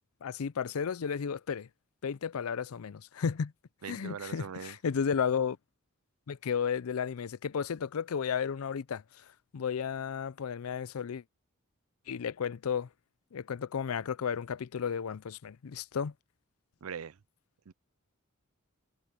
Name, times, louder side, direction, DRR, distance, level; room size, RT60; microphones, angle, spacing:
voice 1, 0.2-1.7 2.0-3.5 3.9-5.6 6.3-9.0 9.5-11.2 12.1-12.9 13.3-16.1, left 7 dB, 85° left, 0.5 m, -33 dB
voice 2, 3.8-4.8 16.8-17.2 17.7-17.8, right 7 dB, 80° right, 0.5 m, -41 dB
head